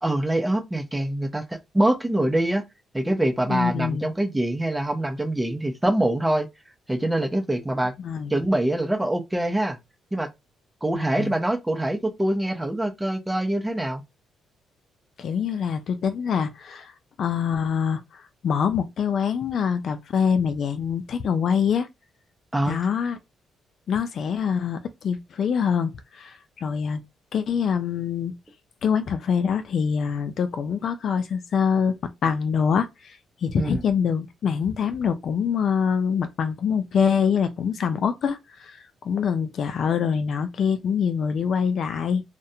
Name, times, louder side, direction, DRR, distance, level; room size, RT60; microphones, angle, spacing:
voice 1, 0.0-2.6 2.9-6.5 6.9-7.9 8.3-9.8 10.1-10.3 10.8-14.0 22.5-22.8 33.5-33.8, right 1 dB, 10° right, 0.6 m, -24 dB
voice 2, 3.5-4.1 8.0-8.3 10.9-11.3 15.2-16.9 17.2-21.9 22.7-23.2 23.9-27.0 27.3-28.4 28.8-42.2, left 7 dB, 60° left, 0.3 m, -25 dB
2.4 x 2.1 x 2.7 m
cardioid pair, 90°, 0 cm